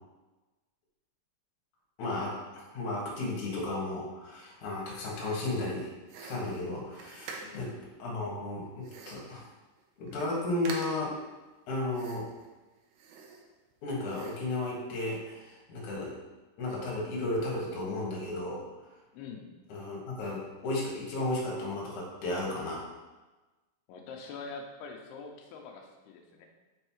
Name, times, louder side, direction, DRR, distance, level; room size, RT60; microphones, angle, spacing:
voice 1, 2.0-5.9 6.2-7.7 8.0-9.4 10.0-11.1 11.7-12.3 13.8-16.1 16.6-18.6 19.7-22.8, left 2 dB, 55° left, -4 dB, 2.8 m, -34 dB
sound 1, 6.1-7.8 8.8-9.3 9.8-9.9 10.1-10.3 10.6-11.2 11.9-12.5 12.9-13.7 14.1-14.5, right 4 dB, 85° right, 3.0 m, -45 dB
voice 2, 19.1-19.5 23.9-26.5, left 4 dB, 85° left, 2 dB, 2.8 m, -44 dB
6.5 x 5.6 x 4.7 m, 1.2 s
omnidirectional pair, 4.6 m